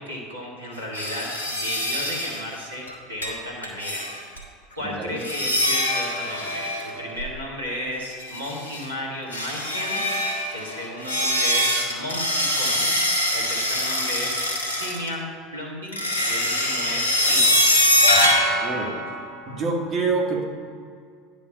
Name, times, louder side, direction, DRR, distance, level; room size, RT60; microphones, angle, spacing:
voice 1, 0.0-4.1 4.7-10.0 10.5-13.0 13.3-16.0 16.2-17.6, left 1 dB, 80° right, -3 dB, 1.6 m, -34 dB
sound 1, 0.9-2.4 2.9-3.0 3.2-3.4 3.6-4.4 5.2-7.4 8.1-8.9 9.3-15.1 15.9-19.6, left 1 dB, 80° left, 1.2 m, -23 dB
voice 2, 4.8-5.2 18.6-19.0 19.5-20.5, right 4 dB, 35° right, 0 dB, 1.6 m, -26 dB
9.6 x 5.1 x 5.6 m, 2.2 s
figure-of-eight pair, 75°, 0 cm